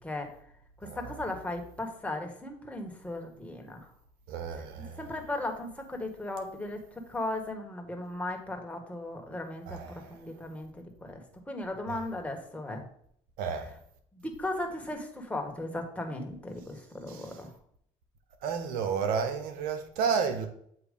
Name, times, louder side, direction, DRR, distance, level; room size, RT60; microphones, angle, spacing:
voice 1, 0.8-3.9 5.0-12.8 14.1-17.5, left 2 dB, 10° left, 1.6 m, -37 dB
voice 2, 4.3-5.0 9.7-10.2 11.9-12.0 13.4-13.7 17.1-17.2 18.4-20.5, right 6 dB, 85° right, 1.0 m, -31 dB
7.9 x 2.8 x 5.3 m
supercardioid pair, 70°, 14 cm